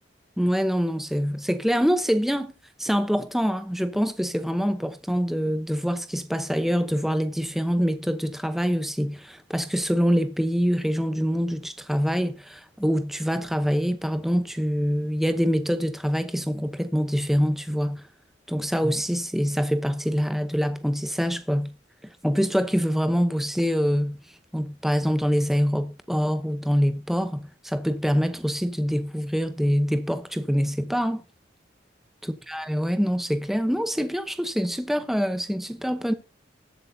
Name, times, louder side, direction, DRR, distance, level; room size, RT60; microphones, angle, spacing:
voice 1, 0.4-2.5 2.8-18.0 18.5-21.7 22.2-24.2 24.5-31.2 32.2-36.1, equal, ahead, 0.8 m, -25 dB
20.0 x 8.1 x 2.7 m
head